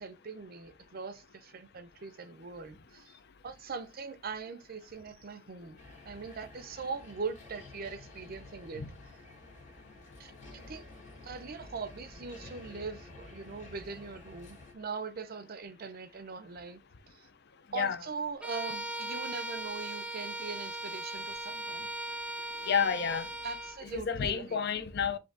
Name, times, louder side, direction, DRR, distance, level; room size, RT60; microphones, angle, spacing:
voice 1, 0.0-3.1 3.4-5.8 6.0-8.8 10.2-10.8 11.2-16.8 17.1-17.3 17.7-21.9 23.4-24.6, right 5 dB, 50° right, 0.5 m, -41 dB
sound 1, 5.8-14.7, left 2 dB, 40° left, 1.7 m, -51 dB
Bowed string instrument, 18.4-23.8, right 1 dB, 5° right, 0.5 m, -39 dB
voice 2, 22.7-23.3 23.8-25.2, left 7 dB, 60° left, 0.6 m, -30 dB
5.2 x 2.7 x 3.8 m
head